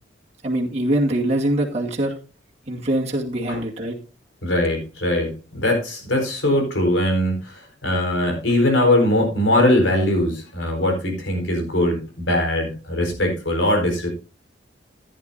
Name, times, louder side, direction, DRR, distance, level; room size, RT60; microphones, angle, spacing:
voice 1, 0.4-2.1 2.7-4.0, right 1 dB, 35° right, -2 dB, 2.3 m, -23 dB
voice 2, 4.4-14.1, left 1 dB, 85° left, 2 dB, 4.5 m, -21 dB
15.0 x 10.5 x 2.7 m, 0.31 s
head